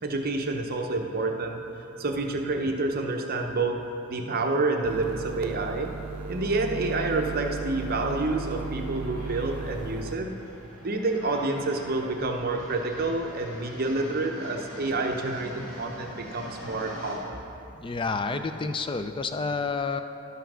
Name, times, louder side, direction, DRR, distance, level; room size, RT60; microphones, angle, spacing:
voice 1, 0.0-1.6 2.0-3.8 4.1-5.9 6.3-10.3 10.8-17.4, right 2 dB, 45° right, 3 dB, 0.7 m, -28 dB
sound 1, 4.8-10.1, right 5 dB, 70° right, 0.4 m, -36 dB
sound 2, 7.0-17.2, equal, 75° left, 2.2 m, -44 dB
voice 2, 17.7-20.0, left 4 dB, 20° left, 8 dB, 0.4 m, -29 dB
11.5 x 5.6 x 6.2 m, 2.9 s
head